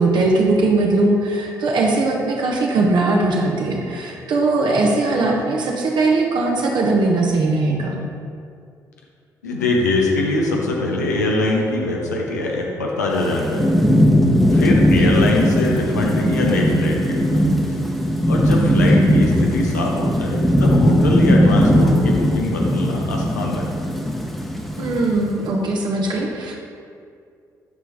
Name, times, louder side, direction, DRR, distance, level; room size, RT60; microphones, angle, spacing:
voice 1, 0.0-8.0 24.8-26.5, right 2 dB, 55° right, -1 dB, 0.9 m, -19 dB
voice 2, 9.4-14.0 14.5-17.4 17.8-17.9 18.3-23.7, left 2 dB, 90° left, -1 dB, 0.8 m, -23 dB
Thunderstorm / Rain, 13.1-25.4, equal, ahead, 1.0 m, -18 dB
8.1 x 4.6 x 3.5 m, 2.3 s
hypercardioid pair, 45°, 9 cm